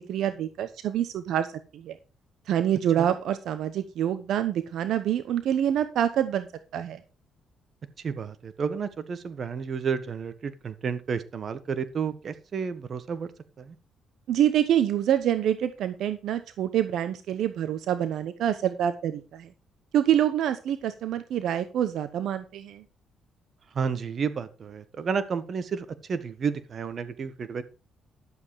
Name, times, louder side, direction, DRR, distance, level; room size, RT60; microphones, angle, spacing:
voice 1, 0.0-1.5 1.7-2.0 2.5-6.5 6.7-7.0 14.3-19.5 19.9-22.8, right 10 dB, 75° right, 11 dB, 0.9 m, -26 dB
voice 2, 8.0-13.3 13.6-13.7 23.7-27.6, right 6 dB, 50° right, 12 dB, 1.5 m, -31 dB
11.5 x 7.7 x 4.9 m, 0.31 s
cardioid pair, 90°, 0 cm